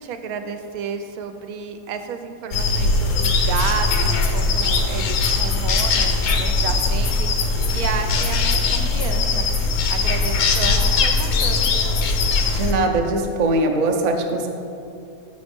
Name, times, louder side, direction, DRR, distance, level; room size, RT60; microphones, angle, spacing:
voice 1, 0.0-9.5 9.9-11.7, right 6 dB, 90° right, 7 dB, 1.1 m, -31 dB
sound 1, 2.5-12.7, left 3 dB, 70° left, 1.0 m, -20 dB
voice 2, 12.5-14.5, right 2 dB, 55° right, 3 dB, 0.4 m, -21 dB
6.3 x 5.1 x 5.2 m, 2.5 s
omnidirectional pair, 1.5 m